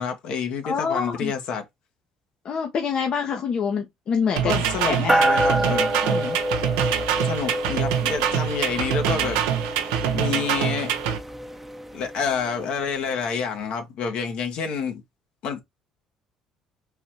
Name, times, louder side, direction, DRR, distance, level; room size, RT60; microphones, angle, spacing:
voice 1, 0.0-1.6 4.4-5.9 7.2-9.4 9.7-10.9 11.9-15.0 15.4-15.6, left 6 dB, 65° left, 1.3 m, -28 dB
voice 2, 0.6-1.3 2.4-5.1 6.0-6.4, left 6 dB, 50° left, 0.8 m, -26 dB
sound 1, 4.4-11.2, right 9 dB, 90° right, 0.7 m, -25 dB
sound 2, 5.1-12.8, right 1 dB, 10° right, 0.7 m, -27 dB
4.0 x 2.8 x 2.9 m
supercardioid pair, 80°, 2 cm